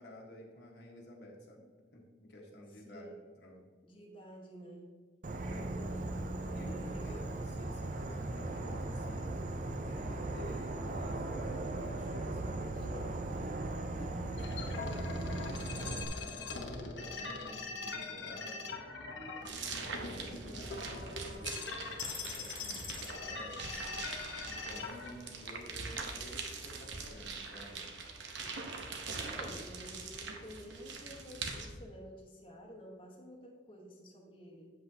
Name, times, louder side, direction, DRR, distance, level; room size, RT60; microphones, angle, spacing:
voice 1, 0.0-1.7 1.9-3.7 5.4-5.6 6.5-9.4 9.8-13.6 14.1-18.7 19.7-23.7 24.4-28.0, left 1 dB, 65° left, -1 dB, 1.2 m, -51 dB
voice 2, 2.8-3.2 3.8-4.9 5.4-6.1 6.5-7.2 12.6-13.3 14.0-14.2 18.1-18.8 29.1-34.7, equal, 25° left, -3 dB, 1.2 m, -51 dB
Insect / Frog, 5.2-16.1, right 2 dB, 45° right, 0.5 m, -38 dB
sound 1, 14.4-25.1, left 4 dB, 90° left, 1.0 m, -42 dB
sound 2, 19.5-31.7, right 4 dB, 80° right, 0.9 m, -43 dB
8.0 x 7.7 x 2.8 m, 1.5 s
head